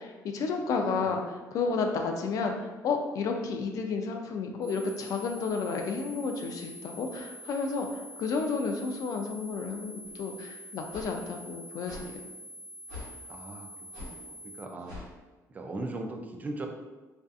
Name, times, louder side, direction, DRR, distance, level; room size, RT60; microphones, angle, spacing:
voice 1, 0.0-12.2, left 4 dB, 60° left, 4 dB, 0.3 m, -32 dB
voice 2, 0.8-1.2 13.3-13.7 14.0-15.0 15.5-16.7, right 2 dB, 25° right, 3 dB, 0.3 m, -39 dB
sound 1, 4.6-14.6, equal, 10° right, 1.0 m, -46 dB
sound 2, 10.0-10.1 10.9-11.1 11.8-12.1 12.9-13.1 13.9-14.1 14.8-15.1, left 3 dB, 90° right, 0.9 m, -43 dB
2.5 x 2.4 x 2.3 m, 1.2 s
cardioid pair, 120°, 7 cm